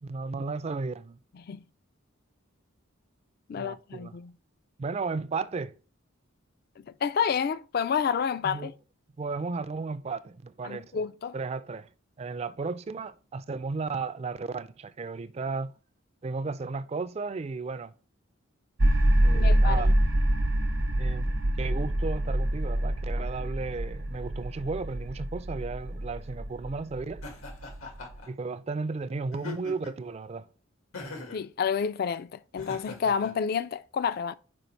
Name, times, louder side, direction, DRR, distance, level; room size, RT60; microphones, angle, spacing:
voice 1, 0.0-1.2 3.5-4.1 4.8-5.7 8.4-8.7 9.2-10.9 11.3-11.9 12.2-15.7 16.2-17.9 19.2-19.9 21.0-27.2 28.3-30.5, right 4 dB, 30° right, 0.3 m, -34 dB
voice 2, 1.3-1.6 3.5-4.3 7.0-8.7 10.6-11.4 19.3-19.9 31.3-34.3, left 6 dB, 50° left, 0.3 m, -29 dB
sound 1, 18.8-28.2, right 1 dB, 70° right, 0.8 m, -26 dB
Laughter, 27.2-28.3 29.3-30.0 30.9-31.4 32.5-33.3, left 3 dB, 90° left, 1.7 m, -41 dB
5.3 x 4.9 x 4.4 m
head